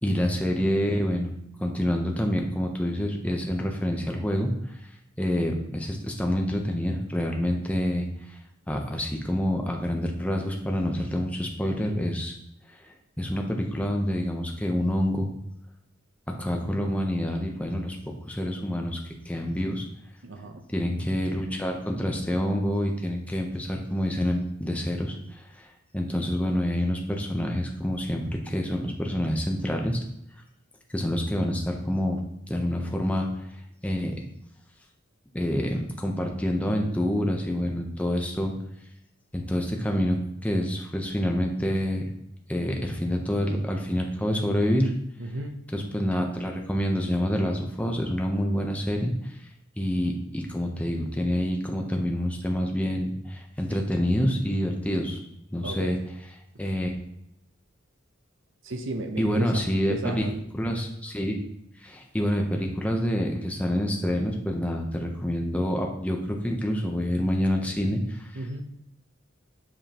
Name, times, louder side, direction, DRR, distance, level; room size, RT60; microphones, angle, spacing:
voice 1, 0.0-1.3 1.6-4.5 5.2-8.4 8.7-12.3 12.8-15.3 16.3-18.0 18.3-19.0 19.3-19.8 20.7-25.7 25.9-30.0 30.9-32.2 32.5-33.3 33.8-34.1 35.3-38.5 39.3-42.1 42.5-44.9 45.7-49.3 49.8-55.2 55.5-56.0 56.6-56.9 59.2-60.3 60.5-61.4 61.8-68.3, equal, 5° left, 1 dB, 0.7 m, -27 dB
voice 2, 20.2-20.7 45.2-45.5 55.6-56.0 58.6-60.4 68.3-68.6, right 2 dB, 70° right, 6 dB, 0.7 m, -34 dB
7.5 x 5.0 x 2.9 m, 0.80 s
head